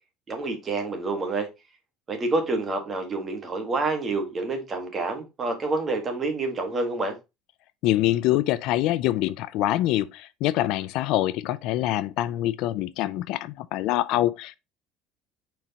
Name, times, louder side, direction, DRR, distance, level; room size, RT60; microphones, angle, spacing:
voice 1, 0.3-1.5 2.1-7.2, right 3 dB, 25° right, 1.7 m, -28 dB
voice 2, 7.8-14.6, left 15 dB, 60° left, 0.4 m, -25 dB
5.0 x 4.6 x 4.1 m
cardioid pair, 155°, 0 cm